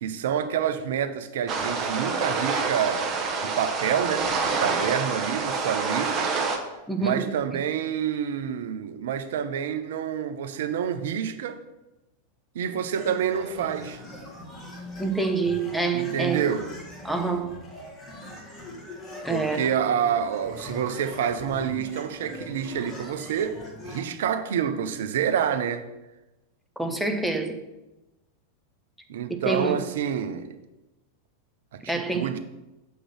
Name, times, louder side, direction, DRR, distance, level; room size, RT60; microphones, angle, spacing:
voice 1, 0.0-3.1 3.4-6.2 7.0-11.6 12.5-14.0 15.9-16.6 19.3-25.8 29.1-30.6 31.7-32.4, right 8 dB, 55° right, 9 dB, 0.6 m, -28 dB
sound 1, 1.5-6.6, right 4 dB, 30° right, 1.0 m, -27 dB
voice 2, 6.9-7.3 15.0-16.5 17.0-17.6 19.2-19.7 26.8-27.6 29.3-29.8 31.8-32.3, right 3 dB, ahead, 4 dB, 0.8 m, -27 dB
sound 2, 12.9-24.0, left 1 dB, 20° left, 1.7 m, -41 dB
6.3 x 3.9 x 6.1 m, 1.0 s
figure-of-eight pair, 90°, 0 cm